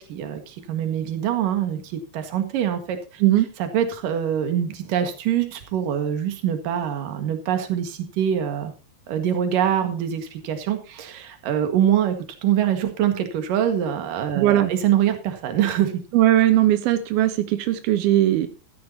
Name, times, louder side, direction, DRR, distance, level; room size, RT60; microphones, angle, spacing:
voice 1, 0.0-3.2 3.6-8.7 9.1-16.0, right 10 dB, 70° right, 7 dB, 3.3 m, -24 dB
voice 2, 14.4-14.7 16.1-18.5, right 13 dB, 90° right, 10 dB, 2.9 m, -19 dB
14.0 x 13.5 x 2.8 m, 0.33 s
omnidirectional pair, 4.2 m